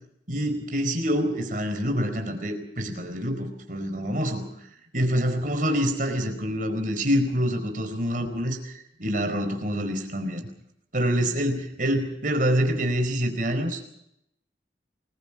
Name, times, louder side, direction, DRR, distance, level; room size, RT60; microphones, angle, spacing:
voice 1, 0.3-4.4 4.9-8.7 9.0-10.4 10.9-13.8, equal, 50° right, 5 dB, 4.7 m, -26 dB
28.5 x 21.5 x 5.1 m, 0.78 s
head